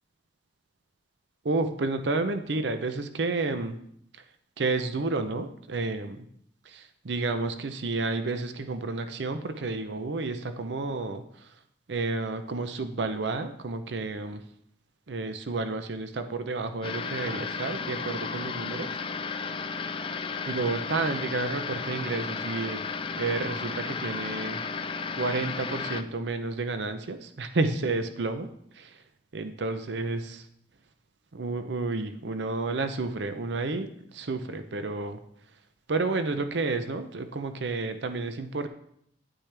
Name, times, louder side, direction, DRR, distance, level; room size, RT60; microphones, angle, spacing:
voice 1, 1.4-3.8 4.6-6.3 6.7-11.5 11.9-14.4 15.1-19.0 20.5-22.8 23.2-24.6 25.1-28.5 28.7-29.0 29.3-30.5 31.3-35.2 35.9-38.7, right 3 dB, 65° right, 9 dB, 0.6 m, -31 dB
sound 1, 16.8-26.0, left 5 dB, 30° left, 0.4 m, -34 dB
10.0 x 8.8 x 3.4 m, 0.71 s
head